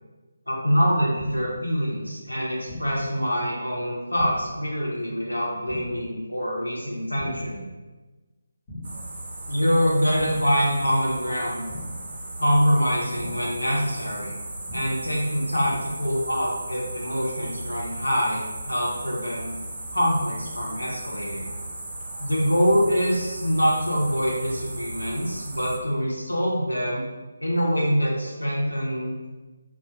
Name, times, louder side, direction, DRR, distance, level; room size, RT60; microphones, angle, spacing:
voice 1, 0.5-7.6 9.5-11.7 12.4-14.3 14.7-19.6 19.9-21.5 22.2-27.0 27.4-29.3, equal, 85° left, -4 dB, 0.8 m, -25 dB
sound 1, 1.2-1.6 2.7-3.1 4.2-4.6 5.7-6.1 7.2-7.6 8.7-9.1 10.2-10.6 11.7-12.1 13.2-13.6 14.7-15.1, left 1 dB, 25° left, 0.8 m, -39 dB
sound 2, 8.8-25.8, right 2 dB, 45° right, 0.5 m, -37 dB
2.4 x 2.0 x 3.0 m, 1.2 s
figure-of-eight pair, 155°, 0 cm